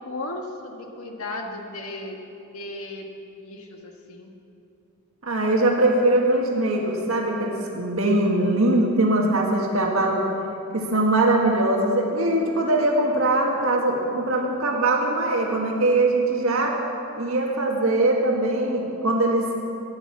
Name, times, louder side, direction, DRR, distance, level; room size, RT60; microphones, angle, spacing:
voice 1, 0.0-2.2 2.5-4.3, left 2 dB, 85° left, 2 dB, 1.5 m, -35 dB
voice 2, 5.2-10.2 10.7-16.8 17.2-19.5, right 2 dB, 75° right, 0 dB, 1.7 m, -21 dB
14.5 x 10.0 x 7.4 m, 2.7 s
head